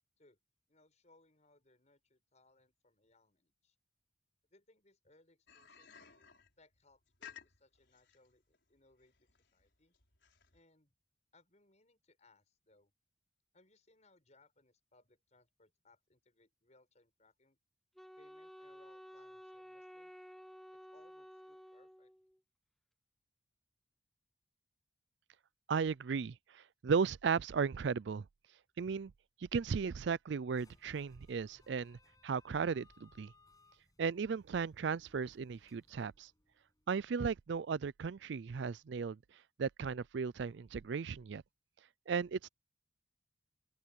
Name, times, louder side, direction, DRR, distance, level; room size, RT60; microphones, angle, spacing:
voice 1, 0.7-3.8 4.5-6.3 6.6-9.9 10.5-10.9 11.3-12.9 13.5-17.6 18.1-20.1 20.7-22.1, left 2 dB, 35° left, 5.8 m, -69 dB
sound 1, 5.5-10.6, left 8 dB, 60° left, 6.0 m, -57 dB
Wind instrument woodwind instrument, 18.0-22.4, equal, ahead, 1.5 m, -53 dB
voice 2, 25.7-28.2 28.8-29.1 29.4-32.0 32.2-33.3 34.0-36.3 36.9-39.2 39.6-41.4 42.1-42.5, right 5 dB, 65° right, 0.4 m, -35 dB
sound 2, 30.5-37.0, left 2 dB, 20° left, 7.6 m, -67 dB
open air
head